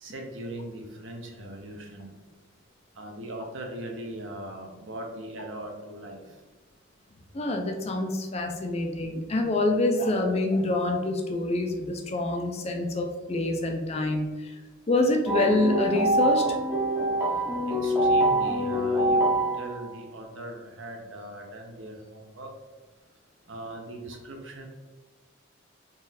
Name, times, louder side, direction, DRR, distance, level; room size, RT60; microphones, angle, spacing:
voice 1, 0.0-2.1 3.0-6.2 17.6-22.5 23.5-24.7, right 1 dB, 65° right, 2 dB, 0.7 m, -40 dB
voice 2, 7.3-14.5 14.9-16.5, left 2 dB, 30° left, 3 dB, 0.4 m, -26 dB
sound 1, 15.3-19.9, right 1 dB, 10° right, 0.6 m, -25 dB
3.9 x 2.4 x 4.0 m, 1.3 s
head